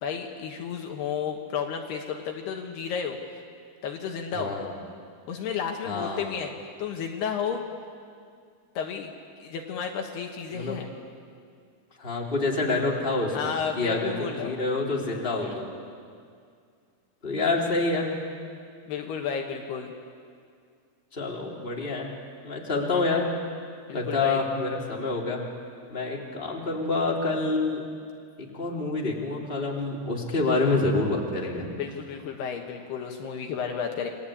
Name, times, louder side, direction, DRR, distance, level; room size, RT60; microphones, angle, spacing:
voice 1, 0.0-3.2 3.8-4.5 5.3-7.6 8.8-9.1 9.4-10.9 13.3-14.6 15.4-15.6 18.9-19.9 23.9-24.4 31.8-34.1, left 7 dB, 70° left, 2 dB, 3.3 m, -32 dB
voice 2, 4.3-4.7 5.8-6.3 10.5-10.8 12.0-15.7 17.2-18.1 21.1-22.1 22.4-23.3 23.9-25.4 25.9-27.9 28.4-31.7, left 3 dB, 15° left, -2 dB, 2.9 m, -27 dB
28.5 x 22.0 x 8.6 m, 2.2 s
omnidirectional pair, 5.1 m